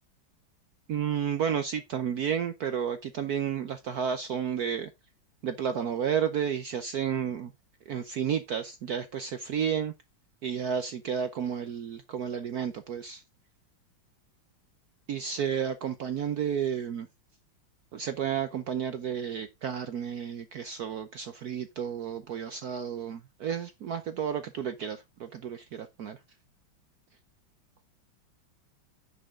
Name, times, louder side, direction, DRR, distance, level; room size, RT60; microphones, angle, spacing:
voice 1, 0.9-4.9 5.4-7.5 7.9-9.9 10.4-13.2 15.1-17.1 17.9-26.2, right 8 dB, 65° right, 1.0 m, -31 dB
10.0 x 5.6 x 3.7 m
omnidirectional pair, 2.3 m